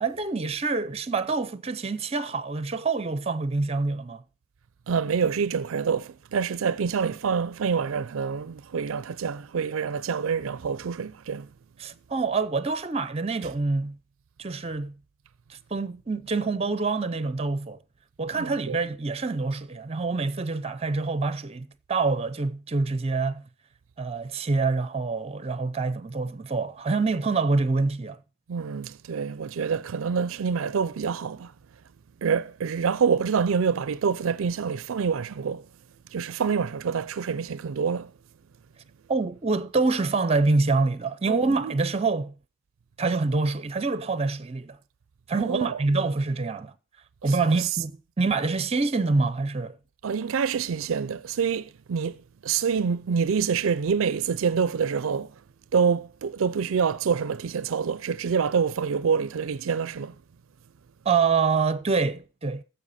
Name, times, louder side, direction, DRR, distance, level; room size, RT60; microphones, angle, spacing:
voice 1, 0.0-4.2 11.8-14.0 14.4-14.9 15.5-17.8 18.2-23.5 24.0-28.2 39.1-42.3 43.0-44.8 45.3-46.7 47.2-49.8 61.0-62.6, right 3 dB, 30° right, 0.6 m, -26 dB
voice 2, 4.9-11.5 18.3-18.8 28.5-31.5 32.2-35.7 36.1-38.1 41.3-41.7 45.4-45.7 47.3-47.7 50.0-55.3 55.7-60.1, right 6 dB, 70° right, 0.4 m, -26 dB
14.5 x 5.6 x 4.2 m
head